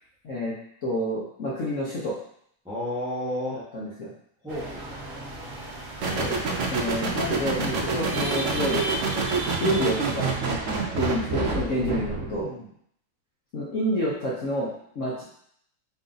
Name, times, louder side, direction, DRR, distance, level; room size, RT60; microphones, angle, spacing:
voice 1, 0.8-2.1 3.7-4.1 6.1-6.3 6.6-8.9 9.6-10.3 10.9-12.5 13.5-14.7 14.9-15.2, equal, 55° left, -6 dB, 0.9 m, -28 dB
voice 2, 2.6-3.6 4.4-4.9 12.3-12.7, left 1 dB, 5° right, -7 dB, 0.6 m, -33 dB
sound 1, 4.5-10.3, right 1 dB, 50° right, 1.2 m, -36 dB
sound 2, 6.0-12.4, right 4 dB, 85° right, 0.6 m, -28 dB
4.1 x 2.6 x 3.8 m, 0.68 s
omnidirectional pair, 2.1 m